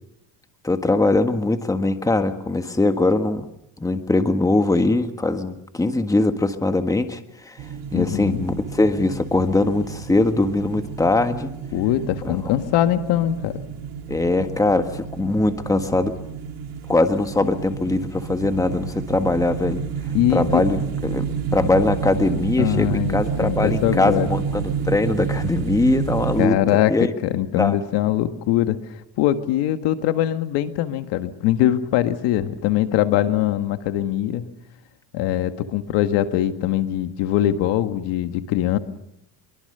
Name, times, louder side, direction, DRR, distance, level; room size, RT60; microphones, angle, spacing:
voice 1, 0.6-3.5 3.8-11.5 12.2-12.4 14.1-16.1 16.9-19.8 20.3-21.3 21.5-27.1 27.6-27.7, left 2 dB, 10° left, 7 dB, 1.6 m, -21 dB
sound 1, 7.6-26.5, right 6 dB, 55° right, 3.3 m, -30 dB
voice 2, 7.9-8.4 11.7-13.6 20.1-20.6 22.6-24.3 26.4-28.8 29.2-34.5 35.1-38.8, left 12 dB, 80° left, 8 dB, 1.8 m, -22 dB
25.0 x 23.0 x 6.8 m, 0.82 s
cardioid pair, 130°, 41 cm